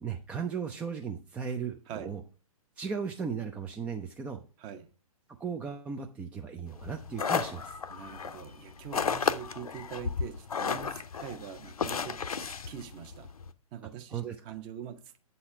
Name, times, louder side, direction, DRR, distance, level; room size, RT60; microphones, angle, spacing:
voice 1, 0.0-2.2 2.8-4.4 5.4-7.8 14.1-14.4, right 6 dB, 5° right, 0.3 m, -36 dB
voice 2, 4.6-4.9 7.9-13.3 13.7-15.2, right 9 dB, 25° right, 0.8 m, -44 dB
sound 1, 6.8-13.5, left 6 dB, 75° left, 0.6 m, -34 dB
7.8 x 4.2 x 5.8 m
figure-of-eight pair, 120°, 19 cm